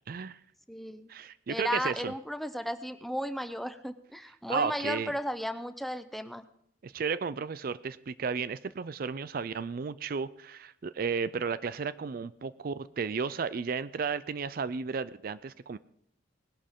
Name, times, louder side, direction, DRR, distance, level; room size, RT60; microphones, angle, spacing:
voice 1, 0.1-0.4 1.1-2.1 4.5-5.1 6.8-15.8, right 5 dB, 50° right, 16 dB, 0.4 m, -33 dB
voice 2, 0.7-1.1 1.5-6.4, equal, ahead, 11 dB, 0.6 m, -34 dB
19.5 x 11.5 x 3.7 m, 0.72 s
head